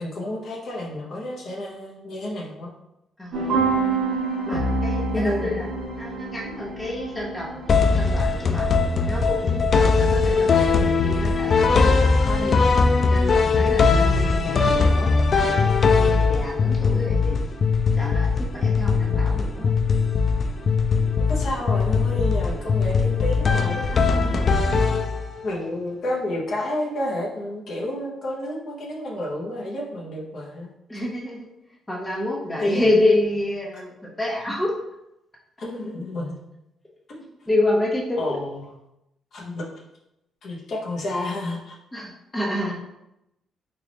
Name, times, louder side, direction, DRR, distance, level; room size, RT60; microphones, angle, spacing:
voice 1, 0.0-2.7 4.5-4.7 5.1-5.6 21.1-24.4 25.4-30.7 32.6-32.8 35.6-36.4 37.1-37.2 38.2-38.7 39.3-39.7 40.4-41.8, left 1 dB, 60° left, -3 dB, 0.8 m, -30 dB
sound 1, 3.3-8.3, right 3 dB, 65° right, 1.1 m, -27 dB
voice 2, 4.5-5.7 6.0-8.7 9.1-10.5 10.8-12.6 13.1-15.1 15.4-17.4 18.0-19.7 30.9-31.5 31.9-34.7 37.5-38.3 41.9-42.7, left 1 dB, 15° left, -3 dB, 1.0 m, -28 dB
sound 2, 7.7-25.5, left 4 dB, 45° left, 0.3 m, -20 dB
3.3 x 2.4 x 3.8 m, 0.88 s
cardioid pair, 90°, 0 cm